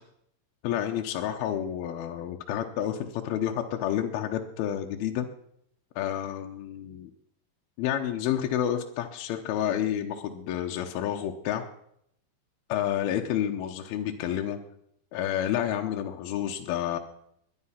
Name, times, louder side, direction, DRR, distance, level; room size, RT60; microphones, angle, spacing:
voice 1, 0.6-5.3 6.0-7.1 7.8-11.6 12.7-14.6 15.1-17.0, left 10 dB, 80° left, 3 dB, 2.8 m, -29 dB
19.5 x 11.0 x 5.7 m, 0.72 s
omnidirectional pair, 4.3 m